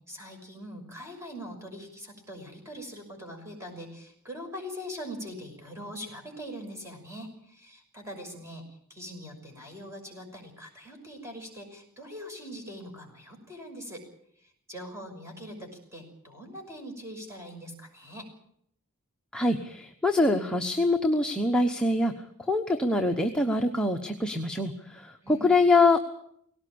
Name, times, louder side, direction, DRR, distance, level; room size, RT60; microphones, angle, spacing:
voice 1, 0.0-14.0 14.4-18.3 25.2-25.5, equal, 15° right, 2 dB, 5.9 m, -42 dB
voice 2, 19.3-22.1 22.5-26.0, left 2 dB, 5° left, 2 dB, 1.0 m, -24 dB
19.0 x 18.0 x 8.6 m, 0.69 s
head